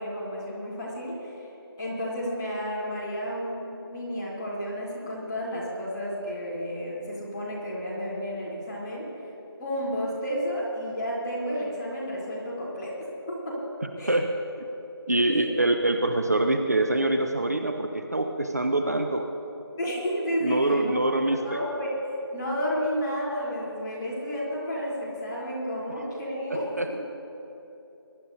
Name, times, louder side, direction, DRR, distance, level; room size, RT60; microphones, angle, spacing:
voice 1, 0.0-1.5 1.8-9.0 9.6-13.0 13.3-13.6 14.0-14.2 15.3-15.4 19.8-20.9 21.2-21.9 22.3-26.8, equal, 10° left, -9 dB, 1.3 m, -31 dB
voice 2, 15.1-19.3 20.4-21.6 26.5-27.0, right 2 dB, 40° right, 5 dB, 0.6 m, -25 dB
22.5 x 11.0 x 2.7 m, 3.0 s
figure-of-eight pair, 175°, 13 cm